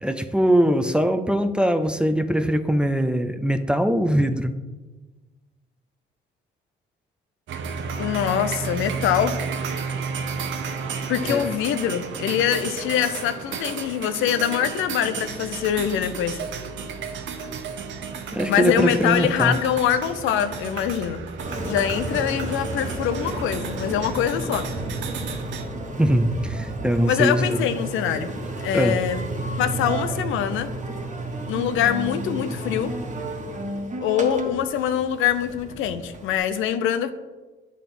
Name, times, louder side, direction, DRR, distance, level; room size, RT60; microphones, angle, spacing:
voice 1, 0.0-4.6 11.2-11.5 18.3-19.6 26.0-27.6 28.7-29.0, right 1 dB, 5° right, 9 dB, 0.5 m, -22 dB
sound 1, 7.5-25.6, right 5 dB, 75° right, 0.9 m, -32 dB
voice 2, 8.0-9.3 11.1-16.4 18.5-21.2 21.7-24.6 27.1-28.3 28.6-29.2 29.6-30.7 31.5-32.9 34.0-37.1, left 9 dB, 90° left, 10 dB, 0.6 m, -24 dB
Engine, 21.4-36.4, right 1 dB, 35° right, 1.3 m, -32 dB
9.0 x 3.6 x 5.9 m, 1.2 s
cardioid pair, 90°, 20 cm